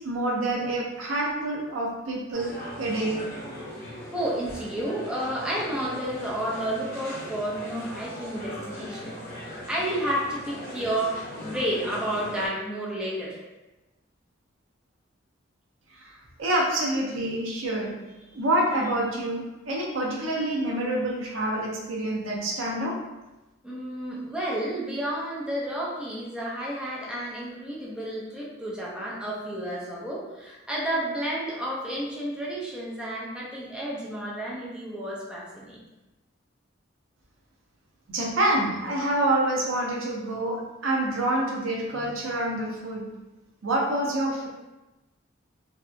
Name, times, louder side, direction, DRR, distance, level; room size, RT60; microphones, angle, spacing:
voice 1, 0.0-3.2 15.9-16.1 16.4-17.9 18.3-23.0 38.1-43.0 43.6-44.5, right 1 dB, 85° right, -2 dB, 0.6 m, -27 dB
sound 1, 2.3-12.5, equal, 50° left, 0.7 m, -39 dB
voice 2, 4.1-13.4 23.6-35.8, right 1 dB, 5° right, -6 dB, 0.5 m, -31 dB
2.8 x 2.3 x 2.4 m, 1.0 s
head